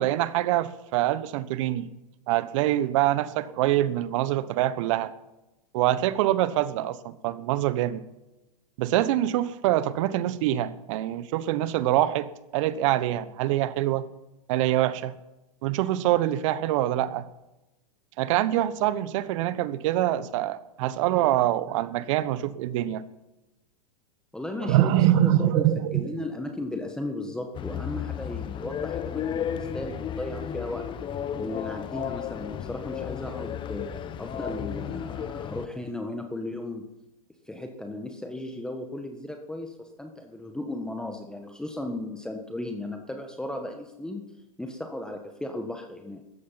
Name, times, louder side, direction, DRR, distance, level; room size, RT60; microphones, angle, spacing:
voice 1, 0.0-1.9 2.3-5.1 5.7-8.0 8.8-14.1 14.5-15.1 15.6-17.3 18.2-23.0 24.7-26.1, right 13 dB, 55° right, 15 dB, 1.2 m, -25 dB
voice 2, 24.3-30.9 31.4-36.9 37.5-46.2, left 1 dB, 5° left, 4 dB, 1.5 m, -36 dB
sound 1, 27.5-35.7, left 9 dB, 25° left, 0.9 m, -33 dB
16.0 x 13.5 x 5.8 m, 0.97 s
hypercardioid pair, 115°, 20 cm